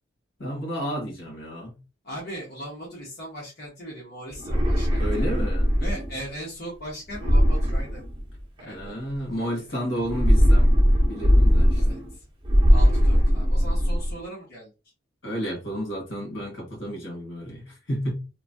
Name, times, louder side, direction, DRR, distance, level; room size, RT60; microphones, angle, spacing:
voice 1, 0.4-1.8 5.0-5.7 8.6-10.7 11.0-12.0 15.2-18.1, equal, 75° left, 1.5 m, -31 dB
voice 2, 2.0-5.2 5.8-8.0 8.6-9.0 9.3-9.6 11.7-12.2 12.7-14.7, equal, 55° left, 1.0 m, -39 dB
sound 1, 4.3-6.2 7.1-8.6 10.0-12.1 12.4-14.2, equal, 25° right, 0.9 m, -20 dB
3.0 x 2.2 x 2.6 m
head